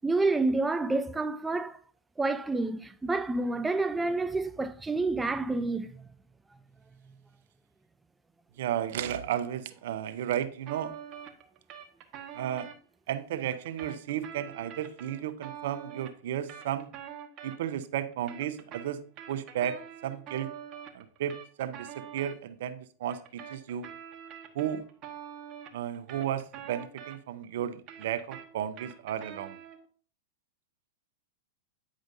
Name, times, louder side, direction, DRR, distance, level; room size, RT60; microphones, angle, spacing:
voice 1, 0.0-1.8 2.2-6.0, right 3 dB, 10° right, 0.3 m, -28 dB
voice 2, 8.6-10.9 12.3-12.7 13.1-16.9 17.4-19.0 19.3-20.5 20.9-23.9 24.5-24.8 25.7-29.6, right 10 dB, 70° right, 0.6 m, -33 dB
sound 1, 10.7-12.8 13.5-17.8 18.1-22.4 23.1-27.4 27.7-29.9, right 9 dB, 40° right, 1.1 m, -45 dB
9.1 x 5.0 x 2.6 m
hypercardioid pair, 115°, 0 cm